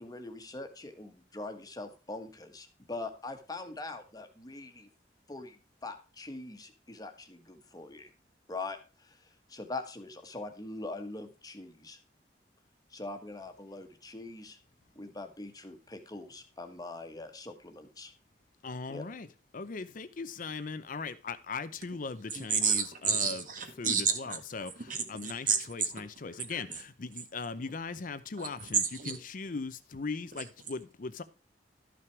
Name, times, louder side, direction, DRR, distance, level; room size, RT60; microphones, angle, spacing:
voice 1, 0.0-4.9 5.3-8.1 8.5-12.0 12.9-14.6 14.9-18.1 18.9-19.0, left 2 dB, 20° left, 1.3 m, -43 dB
voice 2, 18.6-19.3 19.5-23.4 23.8-24.7 25.1-31.2, left 4 dB, 50° left, 0.6 m, -39 dB
voice 3, 22.3-24.4 24.8-26.0 26.3-26.8 28.4-29.2 30.3-30.4, right 6 dB, 50° right, 1.8 m, -31 dB
12.5 x 6.0 x 4.6 m
head